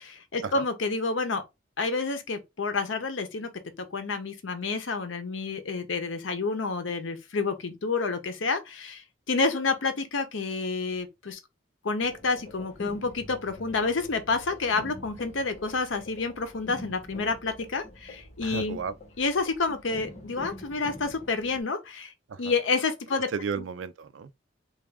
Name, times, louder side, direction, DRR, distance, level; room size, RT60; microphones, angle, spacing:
voice 1, 0.0-1.4 1.8-3.5 3.9-11.4 11.8-18.8 19.2-22.1 22.4-23.3, left 4 dB, 90° left, 0.7 m, -29 dB
sound 1, 12.0-21.6, left 1 dB, 35° left, 0.9 m, -46 dB
voice 2, 18.4-18.9 22.3-22.6 23.3-24.3, right 5 dB, 80° right, 0.4 m, -34 dB
3.5 x 2.4 x 3.3 m
head